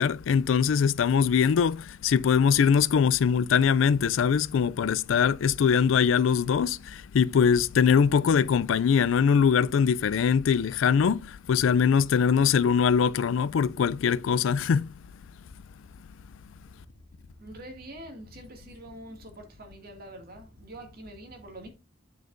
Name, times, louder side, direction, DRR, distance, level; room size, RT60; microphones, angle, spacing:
voice 1, 0.0-14.9, left 7 dB, 80° left, 0.4 m, -22 dB
voice 2, 16.6-21.7, right 1 dB, 50° right, 2.2 m, -45 dB
8.8 x 6.4 x 2.6 m
head